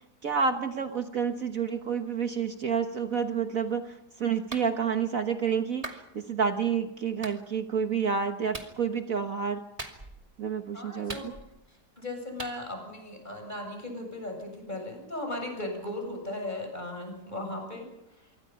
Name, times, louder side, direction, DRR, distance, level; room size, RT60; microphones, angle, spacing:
voice 1, 0.0-9.6 10.4-11.3, right 6 dB, 55° right, 7 dB, 1.6 m, -29 dB
Clapping, 4.5-4.7 5.8-6.0 7.2-7.4 8.5-8.7 9.8-10.2 11.1-11.7 12.4-12.6, right 2 dB, 20° right, 2.5 m, -40 dB
voice 2, 10.7-11.3 11.7-18.4, left 1 dB, 25° left, 3 dB, 7.6 m, -37 dB
26.0 x 24.0 x 5.8 m, 0.87 s
omnidirectional pair, 1.8 m